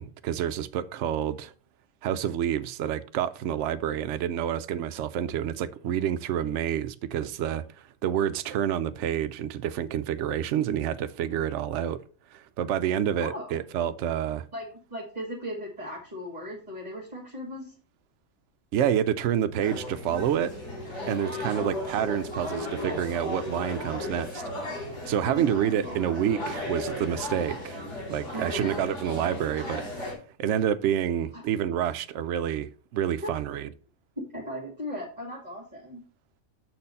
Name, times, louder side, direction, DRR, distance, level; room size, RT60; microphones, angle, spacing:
voice 1, 0.0-1.5 2.0-12.0 12.3-14.4 18.7-20.5 21.1-24.4 25.1-27.8 28.1-29.8 30.4-33.7, right 10 dB, 65° right, 0.8 m, -28 dB
voice 2, 13.2-13.6 14.5-17.8 21.1-22.3 25.2-26.0 28.3-28.7 31.3-31.4 33.2-33.3 34.2-36.0, equal, 30° right, 1.6 m, -38 dB
sound 1, 19.6-30.1, left 1 dB, 55° left, 3.4 m, -35 dB
6.8 x 4.3 x 5.3 m
omnidirectional pair, 1.5 m